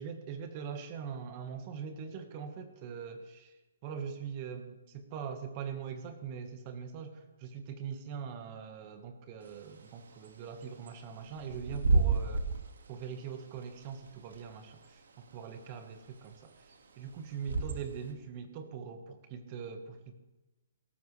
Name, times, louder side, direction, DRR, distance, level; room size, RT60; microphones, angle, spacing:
voice 1, 0.0-3.5 3.8-12.5 12.9-16.5 17.0-20.2, right 6 dB, 30° right, 8 dB, 1.4 m, -42 dB
Bird / Wind, 9.4-18.1, right 3 dB, 80° right, 1.9 m, -34 dB
18.0 x 14.0 x 3.3 m, 1.1 s
hypercardioid pair, 165°, 0 cm